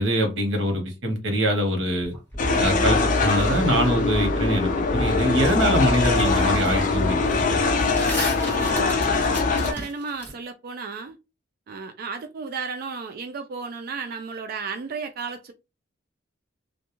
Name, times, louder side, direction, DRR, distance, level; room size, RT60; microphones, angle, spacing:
voice 1, 0.0-2.1 2.6-7.6 7.9-8.1, equal, 75° right, 0.9 m, -24 dB
sound 1, 2.0-3.3 5.5-5.6 6.0-6.8 7.1-10.3, equal, 10° left, 1.1 m, -35 dB
sound 2, 2.4-9.7, left 3 dB, 45° left, 0.4 m, -22 dB
voice 2, 8.4-11.2 11.7-15.5, right 5 dB, 55° right, 0.3 m, -34 dB
2.3 x 2.1 x 2.9 m
head